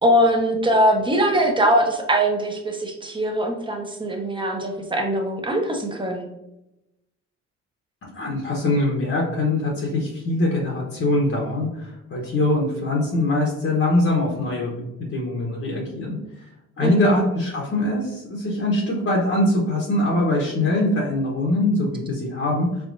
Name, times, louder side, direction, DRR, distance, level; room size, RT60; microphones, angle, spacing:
voice 1, 0.0-6.3 16.8-17.1, equal, 15° right, 2 dB, 0.9 m, -21 dB
voice 2, 8.0-14.7 15.0-16.5 16.8-22.9, left 2 dB, 45° left, -3 dB, 1.1 m, -23 dB
4.1 x 3.6 x 2.6 m, 0.91 s
cardioid pair, 90°, 30 cm